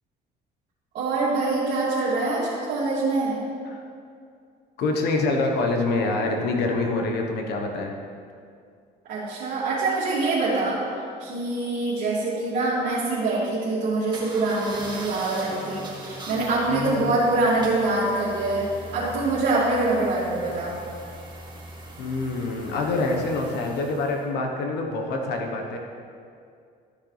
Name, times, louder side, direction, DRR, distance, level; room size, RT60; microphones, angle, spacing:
voice 1, 0.9-3.4 9.1-10.8 11.2-20.7, right 2 dB, 65° right, -10 dB, 2.5 m, -24 dB
voice 2, 4.8-7.9 16.7-17.2 22.0-25.8, left 3 dB, 75° left, 2 dB, 1.2 m, -26 dB
sound 1, 14.1-24.3, right 2 dB, 25° right, 1.9 m, -41 dB
13.0 x 6.4 x 3.3 m, 2.3 s
cardioid pair, 110°, 17 cm